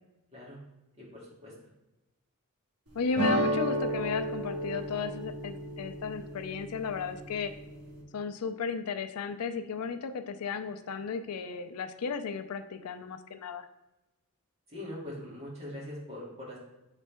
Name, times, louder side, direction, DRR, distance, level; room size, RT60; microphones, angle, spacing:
voice 1, 1.0-1.5 14.7-16.6, left 1 dB, 30° right, -6 dB, 2.3 m, -42 dB
voice 2, 2.9-7.5 8.1-13.7, left 5 dB, 85° left, 9 dB, 0.5 m, -34 dB
sound 1, 3.1-8.0, equal, 70° right, 1.7 m, -33 dB
7.4 x 4.1 x 3.4 m, 0.99 s
head